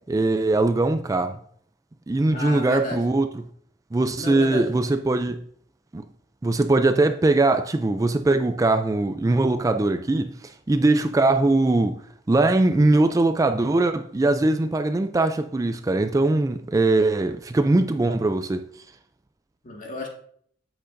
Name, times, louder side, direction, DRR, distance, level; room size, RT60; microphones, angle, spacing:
voice 1, 0.1-1.4 2.1-3.4 3.9-5.4 5.9-6.1 6.4-12.0 12.3-18.7, right 2 dB, 20° right, 0.3 m, -21 dB
voice 2, 2.3-3.0 4.2-4.6 19.6-20.1, left 2 dB, 45° left, 1.8 m, -32 dB
10.0 x 8.0 x 2.6 m
head